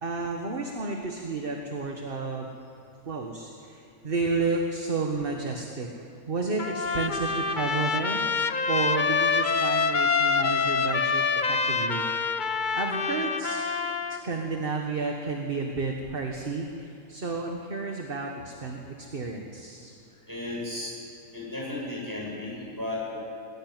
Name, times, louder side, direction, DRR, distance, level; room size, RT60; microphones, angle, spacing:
voice 1, 0.0-2.5 3.1-5.9 6.3-8.2 8.7-12.1 12.7-13.7 14.1-19.9, right 3 dB, 40° right, 2 dB, 1.6 m, -31 dB
Trumpet, 6.6-14.2, left 5 dB, 40° left, 0.9 m, -26 dB
voice 2, 20.2-20.9 21.3-23.2, left 2 dB, 15° right, -5 dB, 7.7 m, -34 dB
21.0 x 15.5 x 9.5 m, 2.6 s
omnidirectional pair, 1.5 m